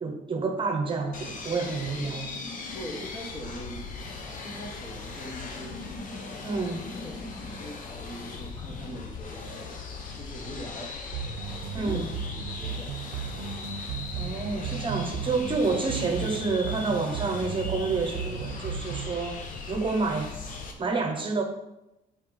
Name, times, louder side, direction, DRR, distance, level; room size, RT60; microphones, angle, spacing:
voice 1, 0.0-2.3 6.4-6.8 11.7-12.1 14.2-20.3 20.8-21.4, right 4 dB, 30° right, 4 dB, 1.0 m, -29 dB
sound 1, 1.1-20.7, left 4 dB, 50° left, 1.1 m, -39 dB
voice 2, 2.7-3.9 4.4-5.8 6.3-6.6 6.9-9.7 10.1-10.9 11.7-13.0, equal, 25° left, 0 dB, 1.5 m, -42 dB
sound 2, 11.1-19.2, right 7 dB, 85° right, 0.7 m, -35 dB
7.4 x 4.7 x 4.0 m, 0.91 s
cardioid pair, 110°, 17 cm